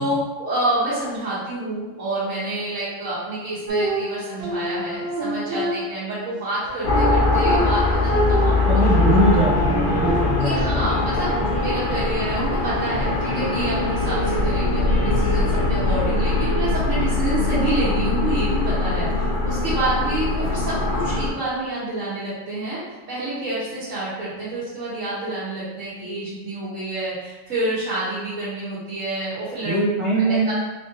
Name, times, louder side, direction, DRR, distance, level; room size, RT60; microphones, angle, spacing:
voice 1, 0.0-8.8 10.4-29.8 30.1-30.5, right 1 dB, 90° right, -11 dB, 1.4 m, -28 dB
sound 1, 3.7-6.2 6.7-10.6, right 1 dB, 60° right, 0.9 m, -27 dB
sound 2, 6.8-21.3, left 3 dB, 50° left, 0.8 m, -22 dB
voice 2, 8.7-10.9 11.3-11.6 29.6-30.5, right 2 dB, 40° right, -6 dB, 0.5 m, -22 dB
Guitar, 8.8-16.7, right 1 dB, 75° left, 1.1 m, -32 dB
3.8 x 3.4 x 2.6 m, 1.2 s
omnidirectional pair, 1.3 m